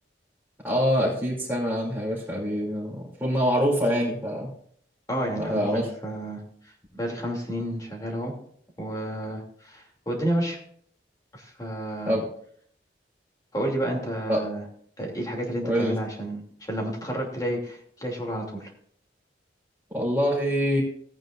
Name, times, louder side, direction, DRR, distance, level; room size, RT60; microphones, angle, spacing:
voice 1, 0.6-4.5 5.4-5.9 12.1-12.2 14.3-14.4 15.6-15.9 19.9-20.8, equal, 10° right, -8 dB, 2.8 m, -25 dB
voice 2, 5.1-8.3 8.8-10.6 11.3-12.1 13.5-14.6 15.0-18.7, right 1 dB, 20° left, 0 dB, 2.8 m, -31 dB
17.5 x 9.1 x 2.5 m, 0.62 s
head